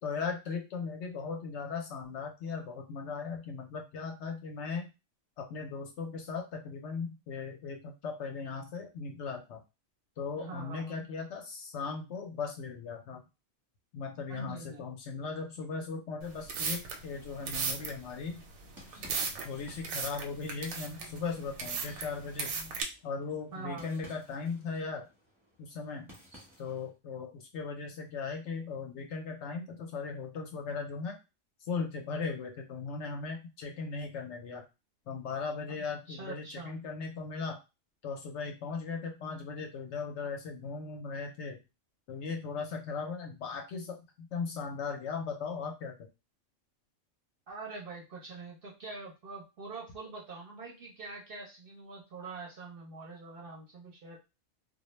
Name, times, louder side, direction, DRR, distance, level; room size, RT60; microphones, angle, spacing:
voice 1, 0.0-4.9 5.4-9.6 10.2-13.2 13.9-18.4 19.4-22.5 23.0-25.1 25.6-26.1 26.6-31.2 31.7-34.6 35.1-37.6 38.0-41.6 42.1-46.0, left 5 dB, 65° left, 3 dB, 0.8 m, -38 dB
voice 2, 10.4-11.1 14.3-14.8 23.5-24.1 35.7-36.7 47.5-54.2, right 3 dB, 55° right, -2 dB, 0.7 m, -44 dB
sound 1, 16.2-22.8, right 5 dB, 85° right, 1.0 m, -37 dB
sound 2, 18.3-26.9, equal, ahead, 0.8 m, -57 dB
2.3 x 2.0 x 3.0 m, 0.27 s
omnidirectional pair, 1.4 m